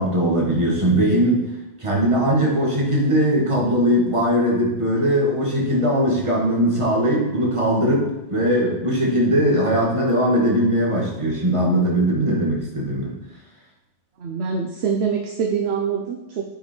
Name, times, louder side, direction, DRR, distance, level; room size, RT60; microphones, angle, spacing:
voice 1, 0.0-1.5 1.8-13.1, equal, 25° right, -3 dB, 1.8 m, -20 dB
voice 2, 14.2-16.5, right 6 dB, 65° right, 3 dB, 0.9 m, -24 dB
8.6 x 5.2 x 4.4 m, 1.0 s
omnidirectional pair, 1.2 m